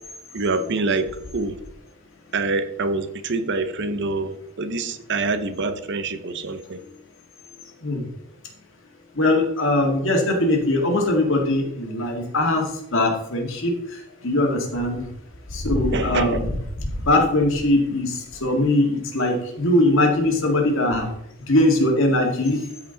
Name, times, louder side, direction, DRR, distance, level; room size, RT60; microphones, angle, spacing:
voice 1, 0.3-1.6 2.3-6.8 15.9-16.4, right 3 dB, 55° right, 10 dB, 0.8 m, -26 dB
voice 2, 9.2-13.7 14.2-15.0 15.5-16.5 17.1-18.1 18.4-21.1 21.5-22.6, left 1 dB, 60° left, 2 dB, 2.0 m, -21 dB
13.5 x 4.9 x 3.9 m, 0.77 s
head